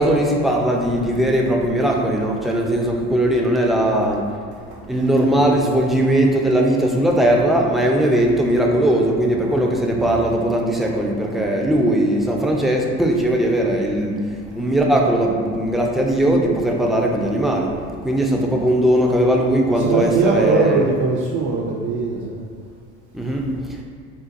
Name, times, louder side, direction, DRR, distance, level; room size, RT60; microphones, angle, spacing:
voice 1, 0.0-4.3 4.9-14.2 14.6-17.8 18.0-20.7 23.1-23.5, right 1 dB, ahead, -1 dB, 0.4 m, -19 dB
voice 2, 4.7-5.4 9.5-9.6 19.7-22.4, right 3 dB, 65° right, -3 dB, 0.5 m, -21 dB
3.8 x 2.2 x 2.5 m, 2.1 s
supercardioid pair, 70°, 34 cm